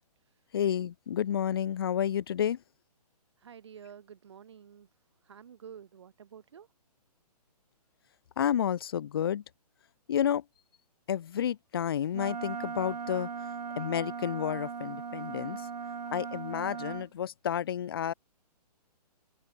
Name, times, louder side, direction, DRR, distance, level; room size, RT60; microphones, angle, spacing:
voice 1, 0.5-2.6 8.4-9.4 10.1-10.4 11.1-13.3 13.8-15.6 16.1-18.1, left 9 dB, 35° left, 3.0 m, -30 dB
voice 2, 3.4-4.9 5.2-6.7, right 8 dB, 45° right, 3.3 m, -50 dB
Wind instrument woodwind instrument, 12.1-17.1, right 6 dB, 75° right, 3.4 m, -38 dB
hypercardioid pair, 175°, 21 cm